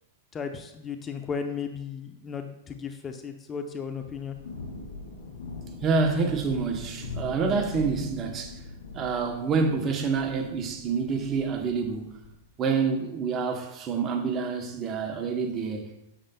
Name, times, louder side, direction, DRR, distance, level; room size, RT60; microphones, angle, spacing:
voice 1, 0.3-4.4, left 6 dB, 20° left, 0.6 m, -35 dB
Thunder / Rain, 4.0-12.5, left 3 dB, 75° left, 2.1 m, -41 dB
voice 2, 5.8-8.6 8.9-12.2 12.6-15.9, right 5 dB, 30° right, 0.9 m, -27 dB
8.8 x 6.6 x 2.2 m
hypercardioid pair, 120°, 0 cm